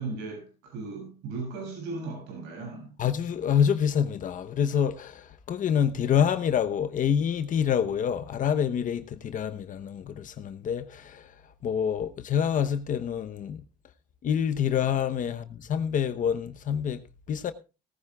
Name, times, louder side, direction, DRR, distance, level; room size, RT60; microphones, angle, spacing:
voice 1, 0.0-3.0, right 3 dB, 90° right, 7.3 m, -37 dB
voice 2, 3.0-11.3 11.6-13.6 14.2-17.5, left 8 dB, 50° left, 1.0 m, -27 dB
17.5 x 14.5 x 2.4 m
cardioid pair, 110°, 17 cm